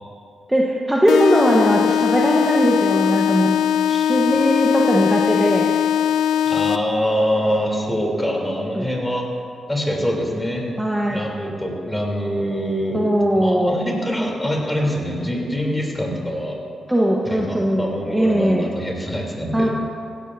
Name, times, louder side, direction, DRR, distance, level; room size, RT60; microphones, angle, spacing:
voice 1, 0.5-3.5 3.9-5.7 8.7-8.9 10.8-11.2 12.9-13.8 16.9-18.7 19.5-19.7, equal, 10° right, -2 dB, 1.2 m, -19 dB
sound 1, 1.1-7.1, left 9 dB, 75° left, 0.4 m, -20 dB
voice 2, 6.4-9.2 9.7-10.6 11.1-13.0 13.3-16.6 17.3-19.7, equal, 15° left, -1 dB, 3.3 m, -24 dB
16.5 x 12.0 x 2.7 m, 2.4 s
hypercardioid pair, 40°, 0 cm